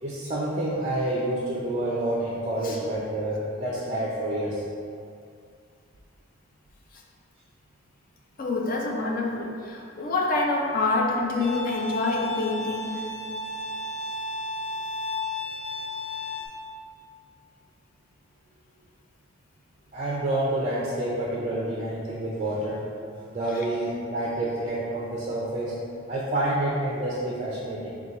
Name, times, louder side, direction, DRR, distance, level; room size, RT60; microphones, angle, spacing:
voice 1, 0.0-4.6 19.9-22.9 23.3-25.8 26.1-27.9, right 1 dB, 30° right, -5 dB, 0.4 m, -28 dB
voice 2, 8.4-13.1 23.5-23.7, left 2 dB, 40° left, -1 dB, 0.4 m, -27 dB
Bowed string instrument, 11.4-16.5, left 2 dB, 85° left, 0.8 m, -33 dB
4.3 x 2.3 x 3.8 m, 2.3 s
head